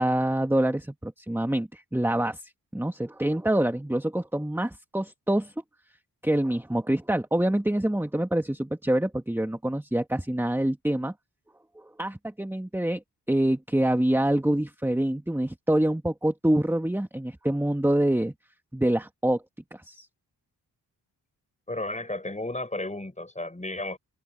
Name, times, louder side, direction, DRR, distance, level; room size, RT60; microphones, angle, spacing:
voice 1, 0.0-5.5 6.2-11.1 11.8-13.0 13.3-18.3 18.7-19.4 19.7-20.1, right 1 dB, 5° right, 1.7 m, -26 dB
voice 2, 21.7-24.0, left 2 dB, 15° left, 5.9 m, -33 dB
cardioid pair, 55°, 41 cm